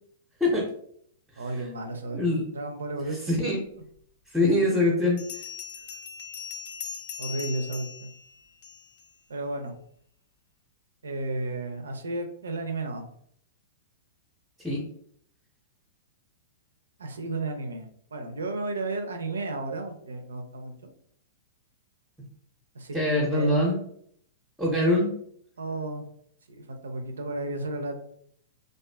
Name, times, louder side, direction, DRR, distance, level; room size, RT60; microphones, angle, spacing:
voice 1, 1.4-3.2 7.2-8.1 9.3-9.7 11.0-13.0 17.0-20.9 22.7-23.5 25.6-26.1 26.6-28.0, right 2 dB, 70° right, 5 dB, 0.4 m, -33 dB
voice 2, 3.3-3.6 4.3-5.2 14.6-14.8 22.9-23.8 24.6-25.1, left 1 dB, 5° right, -3 dB, 0.6 m, -23 dB
Bell, 4.0-4.1 5.2-9.1, left 7 dB, 50° left, 0.4 m, -40 dB
2.4 x 2.3 x 2.2 m, 0.65 s
figure-of-eight pair, 105°, 0 cm